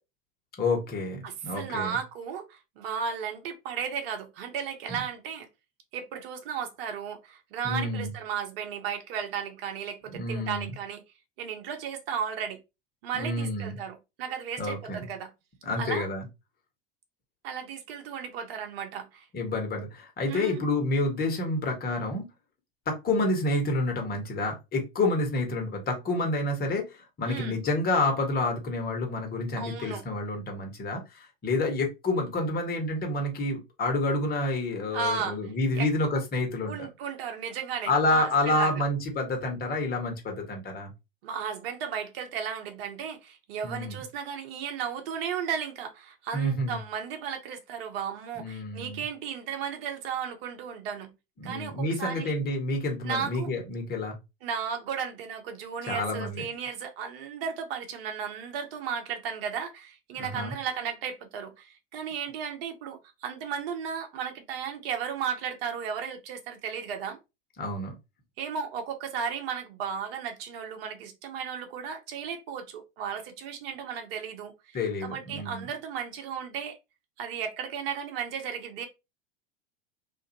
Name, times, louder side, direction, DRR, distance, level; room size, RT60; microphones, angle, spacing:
voice 1, 0.6-2.0 4.9-5.0 7.6-8.1 10.1-10.7 13.1-13.8 14.6-15.1 15.6-16.3 19.3-22.3 22.9-36.9 37.9-40.9 43.6-44.0 46.3-46.8 48.4-49.0 51.4-54.1 55.9-56.5 60.2-60.5 67.6-67.9 74.7-75.7, left 2 dB, 30° left, 1.3 m, -29 dB
voice 2, 1.2-5.5 5.9-11.0 11.4-12.6 13.0-15.3 15.8-16.1 17.4-19.3 20.3-20.6 27.3-27.6 29.6-30.0 34.9-35.4 35.7-35.9 36.7-38.8 41.2-51.1 51.4-52.3 53.0-53.5 54.4-67.2 68.4-76.8 77.2-78.9, right 7 dB, 70° right, 0.9 m, -35 dB
2.6 x 2.4 x 2.7 m
hypercardioid pair, 90°, 30 cm